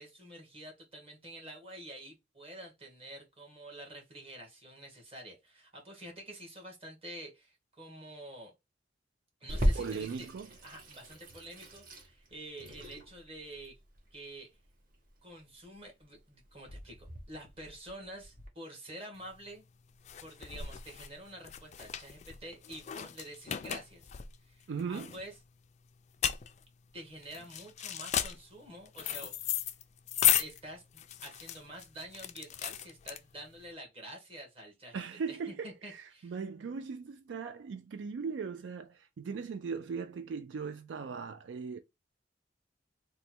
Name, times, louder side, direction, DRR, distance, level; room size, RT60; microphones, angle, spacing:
voice 1, 0.0-8.5 9.4-10.3 10.6-13.8 14.1-14.5 15.2-19.6 20.2-24.2 24.4-25.3 26.9-29.5 30.4-35.0 35.3-36.3, right 1 dB, 35° right, 1.4 m, -48 dB
Water tap faucet / Sink (filling or washing), 9.5-18.5, equal, 50° right, 0.9 m, -37 dB
voice 2, 9.7-10.5 24.7-25.1 34.9-41.8, right 5 dB, 75° right, 0.4 m, -39 dB
sound 1, 19.2-33.6, left 11 dB, 40° left, 0.3 m, -35 dB
3.2 x 2.2 x 4.3 m
head